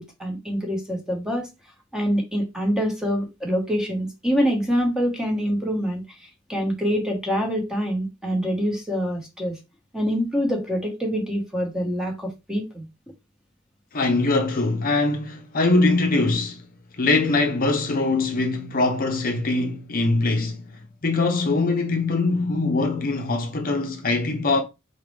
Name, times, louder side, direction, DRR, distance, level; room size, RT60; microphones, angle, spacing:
voice 1, 0.0-1.5 1.9-6.0 6.5-9.5 9.9-12.8, equal, 5° right, 1.2 m, -25 dB
voice 2, 13.9-16.6 17.0-20.7 21.0-24.6, left 3 dB, 45° left, 0.7 m, -22 dB
4.3 x 3.8 x 3.2 m
head